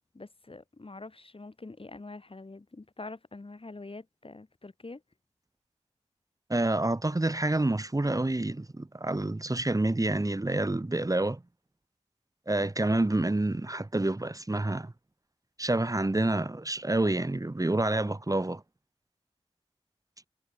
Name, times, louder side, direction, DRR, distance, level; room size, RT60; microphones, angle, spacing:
voice 1, 0.1-5.0, left 3 dB, 55° left, 4.3 m, -45 dB
voice 2, 6.5-11.4 12.5-14.9 15.6-18.6, right 2 dB, 30° right, 1.6 m, -28 dB
wide cardioid pair, 55°, 12 cm